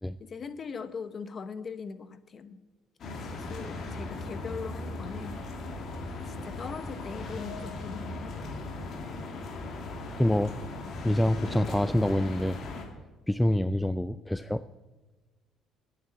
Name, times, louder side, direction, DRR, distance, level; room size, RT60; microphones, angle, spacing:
voice 1, 0.2-2.6 3.2-5.4 6.3-8.5 13.5-13.7, left 5 dB, 30° left, 12 dB, 0.9 m, -40 dB
sound 1, 3.0-12.9, left 2 dB, 45° left, 2.5 m, -38 dB
voice 2, 10.2-10.5 11.0-12.6 13.3-14.6, left 1 dB, 5° left, 13 dB, 0.3 m, -26 dB
9.2 x 8.9 x 9.6 m, 1.2 s
cardioid pair, 145°, 0 cm